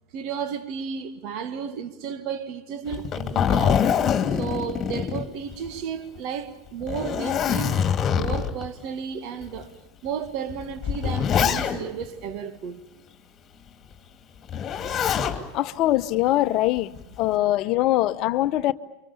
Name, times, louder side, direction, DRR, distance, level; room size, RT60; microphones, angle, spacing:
voice 1, 0.1-3.9 4.3-7.8 8.1-9.7 10.0-12.8, right 7 dB, 55° right, 1.9 m, -33 dB
Zipper (clothing), 2.9-5.8 6.2-6.3 6.8-8.7 9.4-9.5 10.5-12.0 14.5-15.4 16.8-17.2, left 8 dB, 35° left, 2.5 m, -24 dB
voice 2, 15.5-16.9 17.2-18.7, left 15 dB, 50° left, 0.9 m, -22 dB
29.0 x 25.0 x 7.0 m
hypercardioid pair, 95°, 0 cm